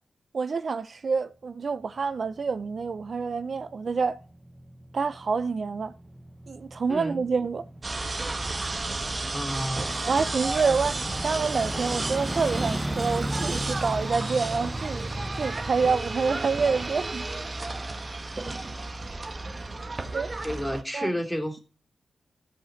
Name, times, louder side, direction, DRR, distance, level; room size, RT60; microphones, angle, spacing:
voice 1, 0.3-4.2 4.9-5.9 6.5-7.7 10.1-11.0 11.2-15.1 15.4-17.3 20.1-20.3 20.9-21.1, right 5 dB, 65° right, 0.6 m, -27 dB
sound 1, 2.0-18.5 18.9-19.0, right 1 dB, 15° right, 0.9 m, -37 dB
voice 2, 6.9-7.2 9.3-10.1 10.5-10.7 20.1-21.6, equal, 10° left, 3.0 m, -32 dB
sound 2, 7.8-20.8, right 2 dB, 40° right, 1.2 m, -33 dB
13.5 x 5.0 x 4.0 m
cardioid pair, 50°, 0 cm